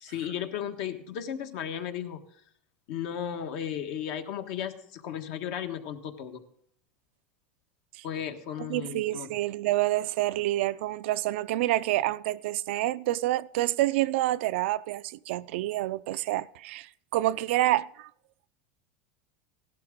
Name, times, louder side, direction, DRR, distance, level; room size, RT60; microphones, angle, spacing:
voice 1, 0.0-2.2 2.9-6.4 8.0-9.3, left 9 dB, 65° left, 1.4 m, -35 dB
voice 2, 8.6-18.1, right 16 dB, 75° right, 0.4 m, -28 dB
16.5 x 11.5 x 3.7 m
supercardioid pair, 130°, 6 cm